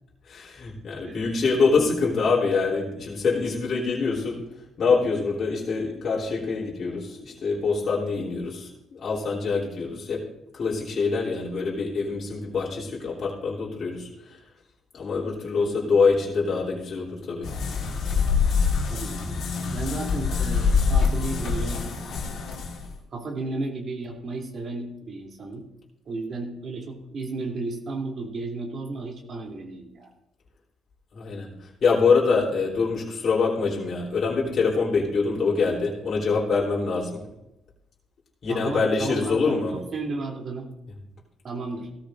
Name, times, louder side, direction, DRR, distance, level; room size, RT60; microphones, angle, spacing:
voice 1, 0.2-4.5 4.8-14.4 14.9-17.5 31.1-37.3 38.4-39.8, left 4 dB, 55° left, -5 dB, 3.3 m, -25 dB
voice 2, 15.6-15.9 18.9-19.4 19.7-21.8 23.1-25.6 26.0-30.1 38.5-40.7 41.4-41.9, right 3 dB, 55° right, 0 dB, 2.9 m, -33 dB
sound 1, 17.4-22.9, left 5 dB, 70° left, 3.1 m, -25 dB
17.5 x 13.5 x 2.6 m, 0.88 s
cardioid pair, 80°, 0 cm